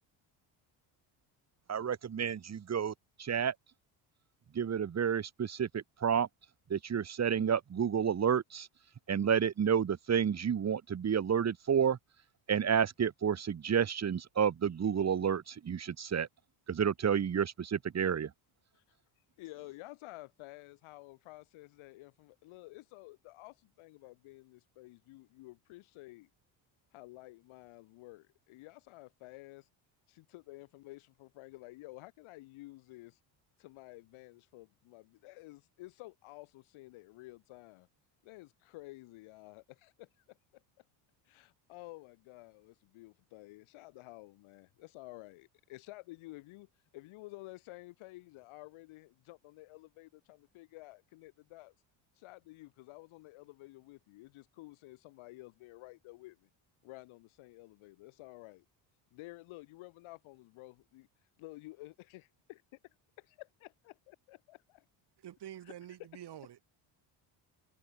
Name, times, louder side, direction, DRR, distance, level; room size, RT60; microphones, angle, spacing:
voice 1, 1.7-3.5 4.5-6.3 6.7-8.7 9.1-12.0 12.5-16.3 16.7-18.3, right 8 dB, 35° right, 1.9 m, -30 dB
voice 2, 19.4-26.3 26.9-29.7 30.1-33.2 33.6-37.9 38.2-40.4 41.3-51.7 52.2-56.5 56.8-58.6 59.1-61.1 61.4-62.6 63.2-64.8 65.6-66.2, left 20 dB, 85° left, 6.0 m, -52 dB
voice 3, 65.2-66.6, right 11 dB, 55° right, 5.2 m, -47 dB
cardioid pair, 110°, 47 cm